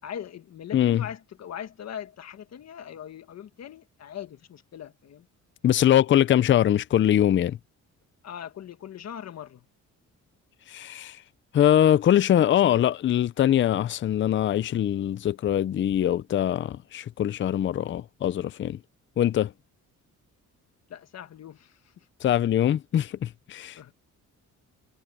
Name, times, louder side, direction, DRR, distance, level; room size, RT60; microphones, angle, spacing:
voice 1, 0.0-5.3 8.2-9.6 20.9-22.1 23.8-23.9, left 9 dB, 55° left, 1.6 m, -40 dB
voice 2, 0.7-1.0 5.6-7.6 10.7-11.2 11.5-18.8 19.2-19.5 22.2-23.9, left 11 dB, 40° left, 0.5 m, -22 dB
cardioid pair, 135°, 31 cm